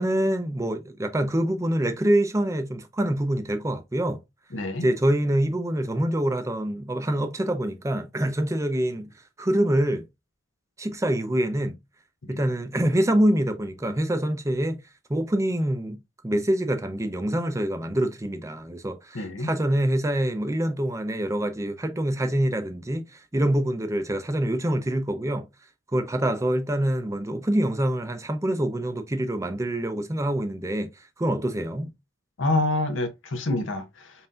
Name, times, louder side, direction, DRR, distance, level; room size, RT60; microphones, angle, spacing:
voice 1, 0.0-4.2 4.8-9.1 9.4-10.0 10.8-11.8 12.3-14.8 15.1-16.0 16.2-25.5 25.9-31.9, right 1 dB, 15° right, 0.5 m, -25 dB
voice 2, 4.5-4.8 12.2-12.4 19.1-19.5 32.4-34.1, left 2 dB, 70° left, 0.8 m, -27 dB
5.4 x 2.7 x 2.4 m
head